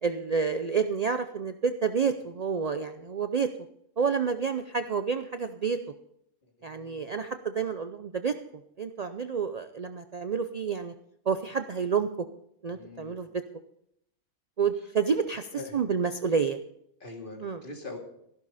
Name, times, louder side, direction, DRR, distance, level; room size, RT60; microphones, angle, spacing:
voice 1, 0.0-3.5 4.0-5.8 6.6-8.3 8.8-10.9 11.3-12.3 12.6-13.4 14.6-15.5 15.7-16.6 17.4-17.6, right 6 dB, 70° right, 8 dB, 0.3 m, -29 dB
voice 2, 6.4-7.1 12.7-13.3 15.5-15.8 17.0-18.0, left 2 dB, 35° left, 1 dB, 2.8 m, -43 dB
14.5 x 12.0 x 4.1 m, 0.73 s
omnidirectional pair, 1.5 m